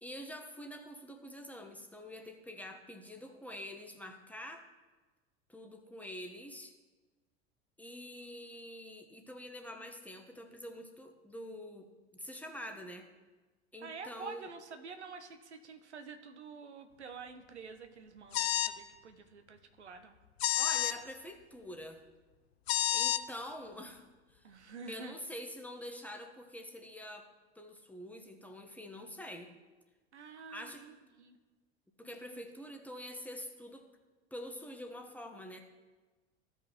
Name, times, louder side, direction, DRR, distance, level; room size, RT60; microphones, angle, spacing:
voice 1, 0.0-4.6 5.5-6.7 7.8-11.9 12.1-13.1 13.7-14.5 20.6-22.0 22.9-24.5 24.9-27.3 27.5-29.5 30.5-30.8 32.0-33.9 34.3-35.6, left 1 dB, 5° left, 3 dB, 1.0 m, -46 dB
voice 2, 13.8-20.1 24.4-25.1 30.1-31.4 32.0-32.4, right 5 dB, 80° right, 7 dB, 0.8 m, -48 dB
sound 1, 18.3-18.8 20.4-21.0 22.7-23.2, left 12 dB, 70° left, 0.5 m, -30 dB
15.0 x 5.3 x 3.0 m, 1.3 s
figure-of-eight pair, 75°, 33 cm